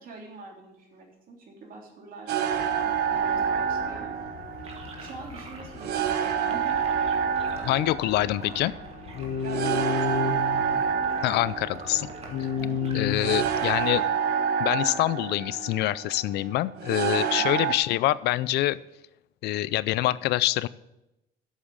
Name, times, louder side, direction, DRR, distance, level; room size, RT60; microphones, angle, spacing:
voice 1, 0.0-2.4 2.8-4.1 5.0-6.9 7.5-8.0 9.4-10.6 12.6-12.9 13.2-13.4 17.3-17.6, right 3 dB, 60° right, 1 dB, 3.3 m, -45 dB
sound 1, 2.3-17.7, right 7 dB, 75° right, 1.1 m, -28 dB
sound 2, 2.5-14.0, left 6 dB, 60° left, 0.9 m, -35 dB
sound 3, 4.6-14.0, right 3 dB, 35° right, 2.0 m, -47 dB
voice 2, 7.6-8.7 11.2-12.1 12.9-14.0 14.6-18.8 19.4-20.7, left 16 dB, 80° left, 18 dB, 0.4 m, -25 dB
8.3 x 7.4 x 8.7 m, 0.91 s
cardioid pair, 110°, 17 cm